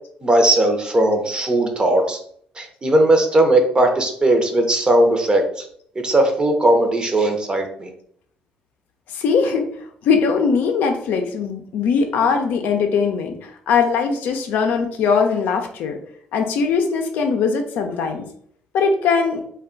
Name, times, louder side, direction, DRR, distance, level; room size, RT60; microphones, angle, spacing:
voice 1, 0.2-2.2 2.6-5.4 6.0-7.9, right 1 dB, 25° right, 4 dB, 0.7 m, -17 dB
voice 2, 9.1-9.7 10.0-16.0 16.3-18.3 18.7-19.4, left 5 dB, 75° left, 5 dB, 0.5 m, -20 dB
2.3 x 2.2 x 3.7 m, 0.64 s
cardioid pair, 80°, 3 cm